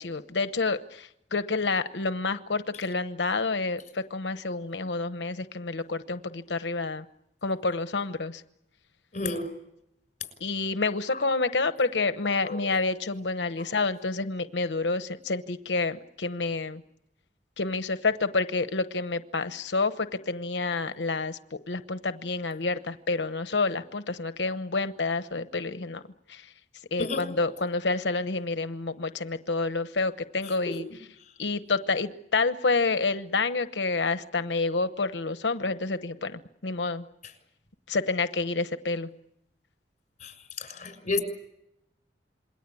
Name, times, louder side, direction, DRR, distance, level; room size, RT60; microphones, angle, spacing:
voice 1, 0.0-7.0 7.4-8.4 10.4-16.8 17.6-26.0 26.3-26.4 26.9-30.8 31.4-37.0 37.9-39.1, left 3 dB, 85° left, 11 dB, 1.0 m, -28 dB
voice 2, 9.1-9.5 11.1-11.2 12.4-12.6 13.6-13.7 27.0-27.2 30.4-30.8 37.2-37.3 40.2-41.2, left 3 dB, 45° left, 10 dB, 6.4 m, -32 dB
27.5 x 22.0 x 8.5 m, 0.82 s
head